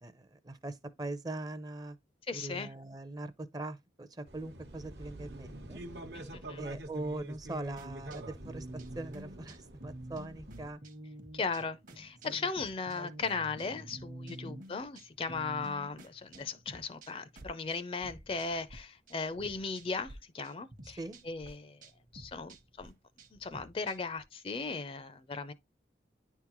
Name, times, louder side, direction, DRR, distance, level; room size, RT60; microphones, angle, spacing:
voice 1, 0.0-2.0 2.3-5.8 6.6-10.8 12.3-12.4 13.0-13.1 14.3-14.6 20.9-21.2, right 2 dB, 20° right, 0.5 m, -41 dB
voice 2, 2.3-2.7 6.1-6.6 11.3-21.0 21.3-21.8 22.1-22.9 23.3-25.5, left 4 dB, 30° left, 0.4 m, -37 dB
sound 1, 4.3-10.7, right 1 dB, 75° right, 0.9 m, -46 dB
sound 2, 7.8-18.8 19.1-20.1 20.4-24.2, right 1 dB, 45° right, 0.9 m, -50 dB
9.8 x 3.6 x 3.0 m
head